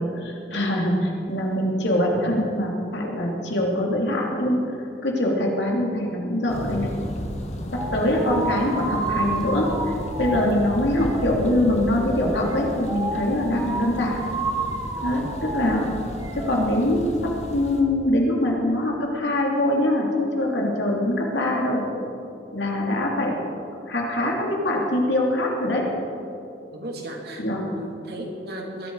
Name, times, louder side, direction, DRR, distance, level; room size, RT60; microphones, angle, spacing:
voice 1, 0.0-4.7 5.0-6.9 7.7-9.7 10.2-14.3 15.0-16.0 16.4-21.9 22.5-23.4 23.9-25.9 27.4-27.6, left 1 dB, 75° left, -1 dB, 3.0 m, -23 dB
Thunder, 6.5-17.8, equal, 40° left, 1.6 m, -34 dB
sound 1, 7.8-16.7, right 3 dB, 20° right, 1.1 m, -31 dB
voice 2, 14.9-15.3 26.7-28.9, right 1 dB, 60° right, 0 dB, 2.8 m, -36 dB
21.0 x 12.0 x 4.9 m, 2.7 s
head